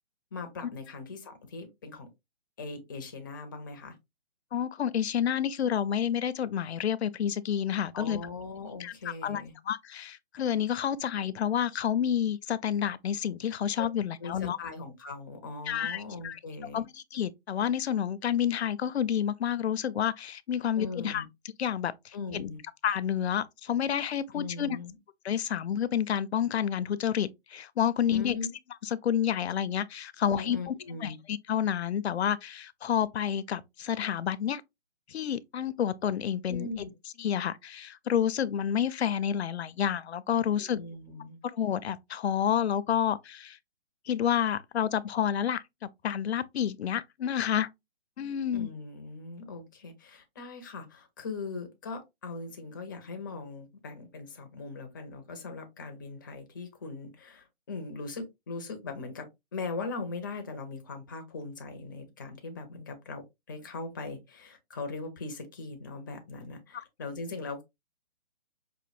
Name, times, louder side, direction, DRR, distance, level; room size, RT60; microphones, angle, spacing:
voice 1, 0.3-2.1 2.6-4.0 7.9-9.5 13.8-13.9 14.2-16.8 20.8-21.3 22.1-22.6 24.3-25.0 28.1-28.5 30.3-31.2 36.5-36.9 40.6-41.4 48.5-67.6, left 3 dB, 20° left, 0.5 m, -40 dB
voice 2, 4.5-8.2 8.8-14.6 15.7-16.4 16.7-21.2 21.6-22.5 22.8-24.8 25.2-28.4 28.8-30.7 31.0-34.6 35.1-36.9 37.2-40.8 41.5-43.6 44.1-45.6 46.0-47.7 48.2-48.7 66.7-66.8, left 9 dB, 75° left, 0.5 m, -29 dB
5.1 x 2.5 x 2.4 m
hypercardioid pair, 155°, 33 cm